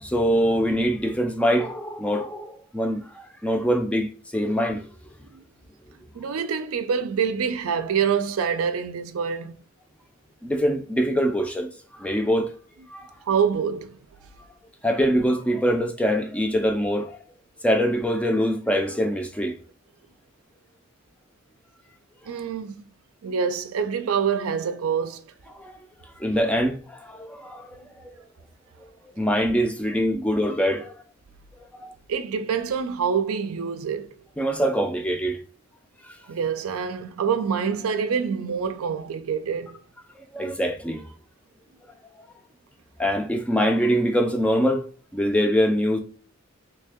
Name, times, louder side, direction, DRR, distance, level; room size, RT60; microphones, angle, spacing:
voice 1, 0.0-4.9 10.4-11.7 12.0-12.6 12.9-13.1 14.8-17.2 17.6-19.6 25.6-25.7 26.2-27.7 29.2-30.9 31.8-31.9 34.4-35.4 40.3-41.0 43.0-44.9 45.1-46.0, equal, 5° left, 0.3 m, -23 dB
voice 2, 6.1-9.6 13.3-14.0 22.3-22.8 23.2-25.2 32.1-34.1 36.3-39.8, right 6 dB, 90° right, 0.4 m, -26 dB
3.3 x 2.7 x 3.5 m
head